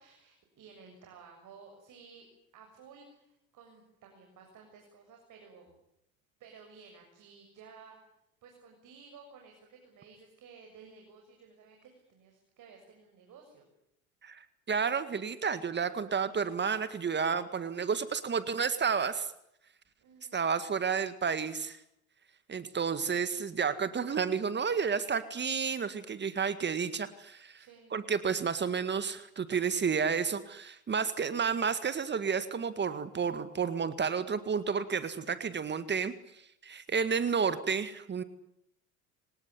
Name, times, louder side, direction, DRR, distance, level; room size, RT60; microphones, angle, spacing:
voice 1, 0.0-2.3 2.5-5.7 6.4-8.1 8.4-13.6 20.0-20.5 27.6-28.0, right 5 dB, 45° right, 2 dB, 7.0 m, -55 dB
voice 2, 14.2-19.3 20.3-21.8 22.5-27.6 27.9-36.1 36.6-38.2, right 6 dB, 25° right, 13 dB, 1.9 m, -31 dB
25.5 x 19.0 x 9.8 m, 0.77 s
hypercardioid pair, 95°, 41 cm